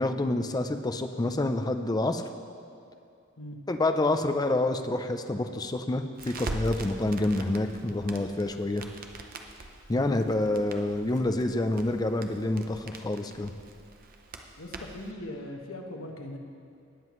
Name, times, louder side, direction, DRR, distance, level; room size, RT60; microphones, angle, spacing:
voice 1, 0.0-2.2 3.7-8.8 9.9-13.5, left 2 dB, 20° left, 7 dB, 0.4 m, -28 dB
Crackle, 6.2-15.1, right 2 dB, 45° right, 0.7 m, -43 dB
voice 2, 14.6-16.4, left 1 dB, 85° left, 2 dB, 1.1 m, -40 dB
18.5 x 7.6 x 3.1 m, 2.5 s
head